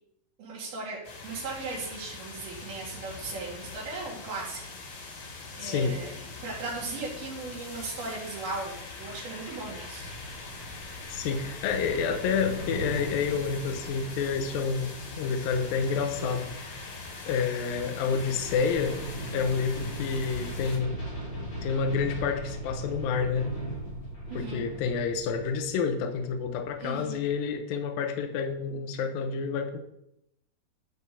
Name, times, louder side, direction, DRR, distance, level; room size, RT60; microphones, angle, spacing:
voice 1, 0.4-4.7 5.0-5.3 5.5-10.1 24.3-24.6 26.8-27.2, right 3 dB, 80° right, -7 dB, 4.1 m, -37 dB
sound 1, 1.0-20.8, left 3 dB, 55° left, 3.5 m, -43 dB
voice 2, 5.6-6.0 11.1-16.8 17.3-19.0 19.3-21.0 21.6-23.5 24.3-29.8, left 5 dB, 80° left, 5 dB, 2.6 m, -29 dB
sound 2, 10.0-27.5, right 1 dB, 40° left, 2.5 m, -39 dB
11.0 x 5.0 x 6.8 m, 0.82 s
omnidirectional pair, 4.2 m